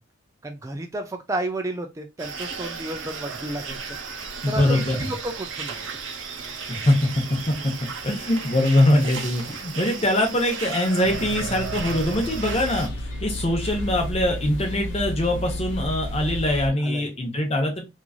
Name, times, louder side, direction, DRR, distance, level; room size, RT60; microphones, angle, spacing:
voice 1, 0.4-3.8 4.5-5.8 9.5-9.6 16.8-17.1, right 1 dB, 15° right, 5 dB, 0.3 m, -32 dB
sound 1, 2.2-12.9, right 5 dB, 75° right, 0.6 m, -35 dB
voice 2, 4.4-5.1 6.7-6.9 7.6-7.7 8.0-12.9 13.2-17.9, left 1 dB, 30° left, 2 dB, 0.8 m, -22 dB
sound 2, 11.0-16.7, left 1 dB, 75° left, 0.8 m, -32 dB
3.0 x 2.5 x 2.3 m, 0.24 s
head